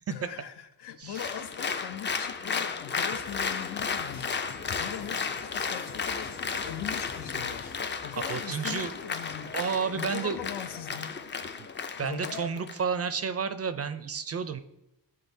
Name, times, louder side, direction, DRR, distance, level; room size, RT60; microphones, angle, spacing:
voice 1, 0.1-7.7 8.0-9.6 9.9-11.2 12.0-12.4, left 10 dB, 75° left, 0.6 m, -41 dB
voice 2, 1.0-1.3 8.3-8.9 9.5-10.4 11.6-11.7 12.0-14.6, right 6 dB, 35° right, 0.4 m, -31 dB
Applause, 1.1-12.8, left 5 dB, 30° left, 0.4 m, -34 dB
sound 1, 3.1-8.6, left 4 dB, 55° left, 0.9 m, -49 dB
10.0 x 3.8 x 2.7 m
cardioid pair, 90°, 41 cm